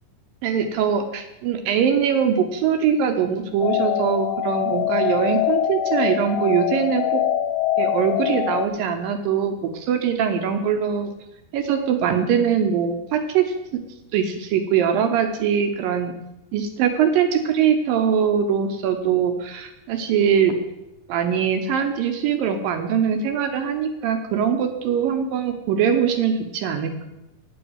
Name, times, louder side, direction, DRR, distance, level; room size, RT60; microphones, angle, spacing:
voice 1, 0.4-7.2 7.8-11.1 11.5-13.5 14.1-16.1 16.5-20.6 21.1-27.1, right 7 dB, 75° right, 6 dB, 2.3 m, -22 dB
sound 1, 3.6-8.7, left 11 dB, 85° left, 2.5 m, -23 dB
8.8 x 8.0 x 8.0 m, 0.92 s
omnidirectional pair, 4.6 m